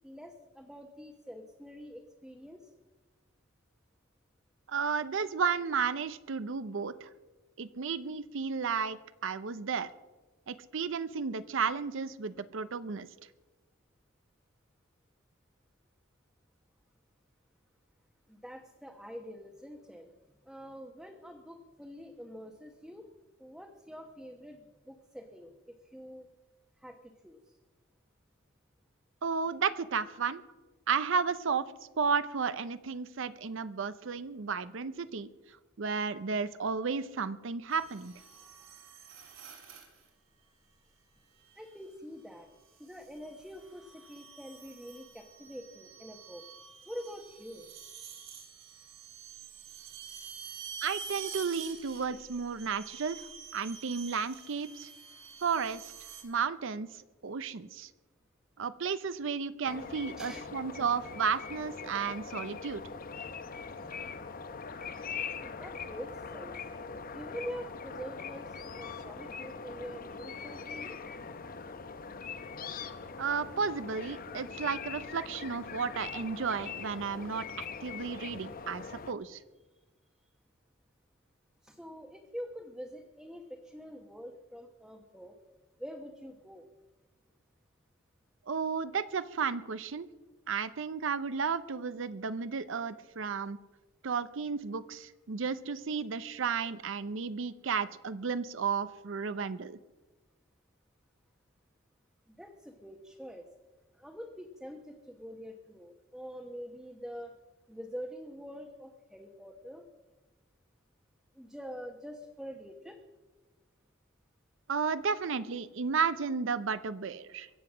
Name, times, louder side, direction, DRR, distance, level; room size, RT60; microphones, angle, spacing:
voice 1, 0.0-2.7 18.3-20.1 20.5-23.1 23.4-25.5 25.8-26.3 26.8-27.6 41.6-42.5 42.8-46.4 46.9-47.7 60.2-60.5 63.8-63.9 65.4-66.5 67.0-71.0 81.6-85.3 85.8-86.7 102.3-103.5 103.9-107.4 107.7-109.8 111.4-113.0, equal, ahead, 3 dB, 1.0 m, -45 dB
voice 2, 4.7-7.1 7.6-9.9 10.5-13.1 29.2-30.4 30.9-31.6 32.0-35.3 35.8-38.1 50.8-54.9 55.4-55.9 56.2-57.9 58.6-62.8 73.2-79.4 88.5-90.1 90.5-93.6 94.0-99.8 114.7-117.5, right 5 dB, 65° right, 14 dB, 0.6 m, -33 dB
sound 1, 37.7-40.1 41.4-41.8 42.7-56.2, right 6 dB, 85° right, 3.1 m, -48 dB
sound 2, 59.6-79.1, left 5 dB, 45° left, 0.8 m, -42 dB
23.0 x 7.9 x 6.2 m, 1.2 s
head